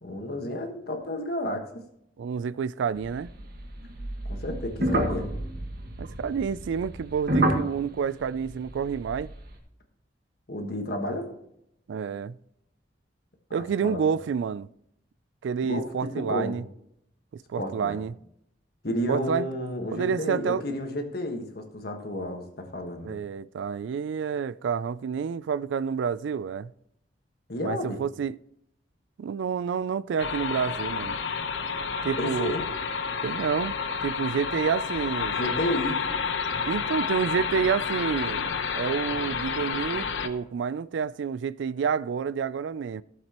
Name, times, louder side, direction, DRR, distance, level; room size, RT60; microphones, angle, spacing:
voice 1, 0.0-1.7 4.3-5.3 10.5-11.3 13.6-14.0 15.6-16.6 17.6-18.0 18.8-23.2 27.5-28.0 32.1-32.6 35.3-36.1, left 1 dB, 55° left, 1.4 m, -31 dB
voice 2, 2.2-3.3 6.0-9.3 11.9-12.4 13.5-14.7 15.4-16.6 17.5-18.1 19.1-19.5 19.9-20.6 23.0-26.7 27.6-28.4 29.2-31.2 32.0-32.5 33.2-33.7 34.0-35.4 36.7-38.5 38.7-43.0, right 6 dB, 80° right, 0.3 m, -29 dB
sound 1, 3.0-9.5, right 1 dB, 55° right, 1.6 m, -30 dB
sound 2, 30.2-40.3, left 5 dB, 85° left, 0.8 m, -30 dB
15.0 x 7.4 x 3.0 m
head